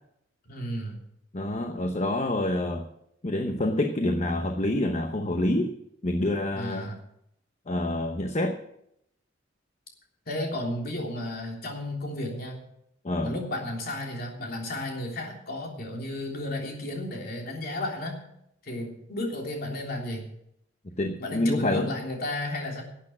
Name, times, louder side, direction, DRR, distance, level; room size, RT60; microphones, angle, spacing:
voice 1, 0.4-1.0 6.5-7.0 10.2-12.6 13.2-18.2 18.6-20.3 21.2-22.8, left 1 dB, 55° left, 0 dB, 3.4 m, -33 dB
voice 2, 1.3-2.9 3.2-5.7 6.0-6.9 7.7-8.6 13.0-13.3 21.0-21.9, left 1 dB, 35° left, 5 dB, 0.9 m, -27 dB
12.0 x 8.4 x 7.6 m, 0.76 s
head